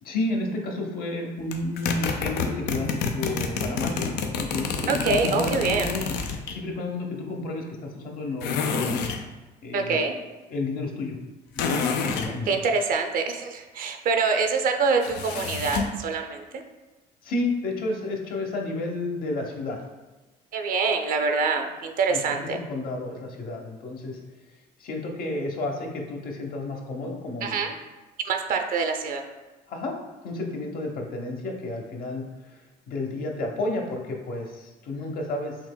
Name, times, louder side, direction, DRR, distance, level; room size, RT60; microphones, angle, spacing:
voice 1, 0.0-9.0 9.6-10.0 10.5-11.2 11.5-12.5 17.2-19.8 22.1-24.2 24.8-27.6 29.7-29.9 30.2-35.6, left 2 dB, 60° left, 1 dB, 0.8 m, -31 dB
sound 1, 1.5-6.6 8.4-9.2 11.6-12.3 15.0-16.0, left 5 dB, 80° left, 0.5 m, -28 dB
voice 2, 4.9-5.9 9.7-10.2 12.5-16.6 20.5-22.6 27.4-27.7 28.2-29.2, right 4 dB, 55° right, 5 dB, 0.5 m, -25 dB
5.8 x 2.9 x 2.2 m, 1.2 s
cardioid pair, 110°, 17 cm